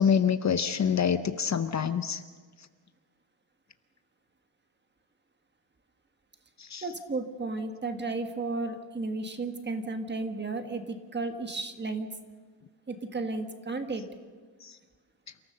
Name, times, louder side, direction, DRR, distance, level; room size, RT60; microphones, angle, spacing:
voice 1, 0.0-2.2 6.6-6.8 14.6-14.7, left 7 dB, 40° left, 11 dB, 0.7 m, -26 dB
voice 2, 6.8-12.1 12.9-14.0, right 3 dB, 25° right, 7 dB, 1.5 m, -33 dB
29.0 x 14.5 x 6.7 m, 1.5 s
wide cardioid pair, 155°, 43 cm